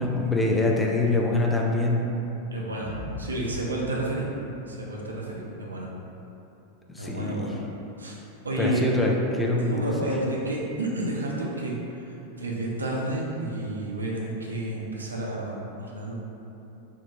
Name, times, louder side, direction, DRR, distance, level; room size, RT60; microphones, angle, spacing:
voice 1, 0.0-2.0 6.9-7.5 8.6-10.1, left 2 dB, 10° left, -2 dB, 0.3 m, -24 dB
voice 2, 2.5-2.9 3.2-4.2 4.7-5.9 7.0-7.6 8.0-8.2 8.4-9.0 9.6-16.3, right 1 dB, 75° right, -3 dB, 0.5 m, -30 dB
sound 1, 2.8-5.2, left 1 dB, 65° left, 0.6 m, -39 dB
2.7 x 2.2 x 3.5 m, 2.9 s
figure-of-eight pair, 90°, 0 cm